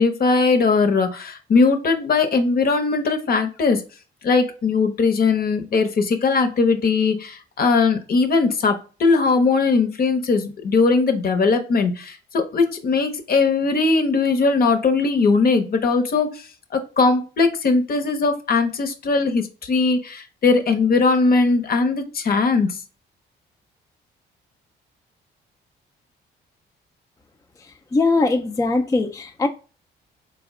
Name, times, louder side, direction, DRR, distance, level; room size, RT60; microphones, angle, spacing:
voice 1, 0.0-3.8 4.2-22.8, left 4 dB, 50° left, 0.7 m, -19 dB
voice 2, 27.9-29.5, left 3 dB, 15° left, 0.3 m, -20 dB
3.9 x 2.1 x 3.6 m
cardioid pair, 90°, 20 cm